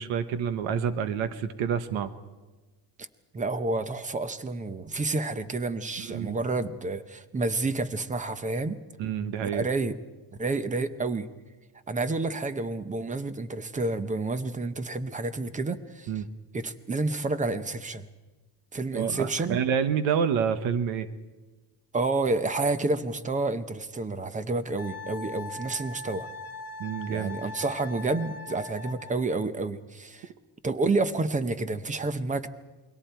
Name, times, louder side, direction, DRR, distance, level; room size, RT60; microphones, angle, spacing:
voice 1, 0.0-2.1 6.0-6.4 9.0-9.7 16.1-16.3 18.9-21.1 26.8-27.4, right 7 dB, 85° right, 12 dB, 1.3 m, -28 dB
voice 2, 3.3-8.8 9.4-9.9 10.4-11.3 11.9-16.1 16.5-18.1 18.7-19.6 21.9-26.3 27.1-30.3 30.6-32.5, right 3 dB, 15° right, 13 dB, 0.7 m, -29 dB
Wind instrument woodwind instrument, 24.8-29.2, left 2 dB, 30° left, 1.7 m, -40 dB
29.5 x 22.5 x 4.6 m, 1.2 s
cardioid pair, 170°, 46 cm